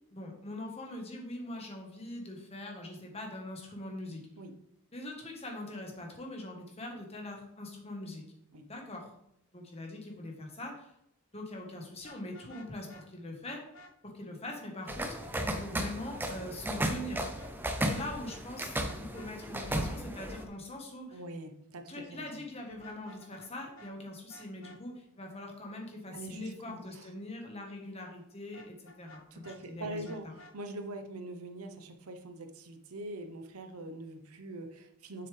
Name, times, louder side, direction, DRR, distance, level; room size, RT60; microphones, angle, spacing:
voice 1, 0.1-4.2 4.9-8.2 8.7-9.1 9.5-10.9 11.3-13.6 14.0-17.3 17.8-21.2 21.9-30.3, left 1 dB, 25° left, 1 dB, 1.4 m, -42 dB
Vehicle horn car horn honking, 12.0-13.0 13.4-13.9 17.4-18.0 18.3-18.4 18.8-19.3 22.7-23.5 23.7-23.9 24.3-24.8 28.5-29.6 30.0-30.5, left 1 dB, 55° left, 0.9 m, -54 dB
sound 1, 14.9-20.4, right 1 dB, 10° right, 0.5 m, -35 dB
voice 2, 21.1-22.4 26.1-27.1 29.3-30.3 30.5-35.3, right 2 dB, 80° right, 6 dB, 0.9 m, -43 dB
7.1 x 6.8 x 3.4 m, 0.79 s
head